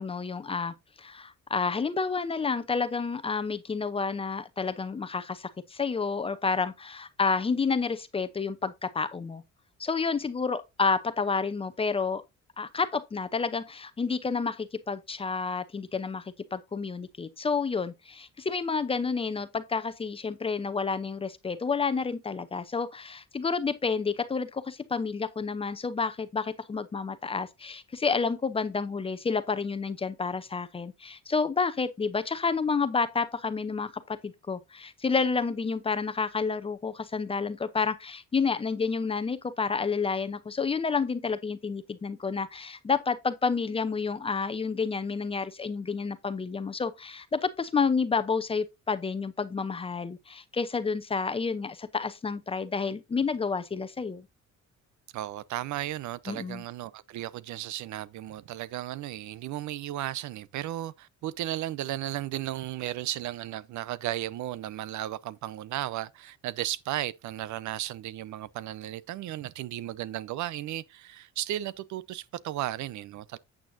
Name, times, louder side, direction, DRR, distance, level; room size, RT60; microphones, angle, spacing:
voice 1, 0.0-9.4 9.8-12.2 12.6-16.2 16.5-54.3 56.3-56.6, left 5 dB, 20° left, 0.7 m, -30 dB
voice 2, 55.1-73.4, right 14 dB, 75° right, 0.8 m, -35 dB
8.8 x 8.8 x 2.7 m
cardioid pair, 175°, 29 cm